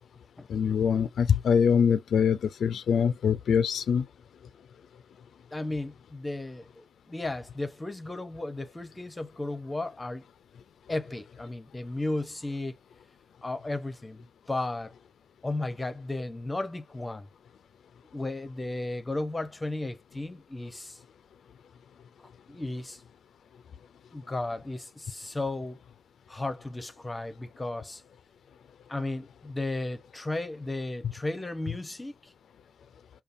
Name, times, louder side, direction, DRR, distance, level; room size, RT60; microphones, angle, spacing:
voice 1, 0.5-4.0, left 7 dB, 85° left, 0.3 m, -24 dB
voice 2, 5.5-10.2 10.9-12.8 13.4-14.9 15.4-17.3 18.1-21.0 22.2-23.0 24.1-25.8 26.3-28.0 28.9-32.3, left 2 dB, 15° left, 0.6 m, -34 dB
5.1 x 2.3 x 2.5 m
wide cardioid pair, 170°, 0 cm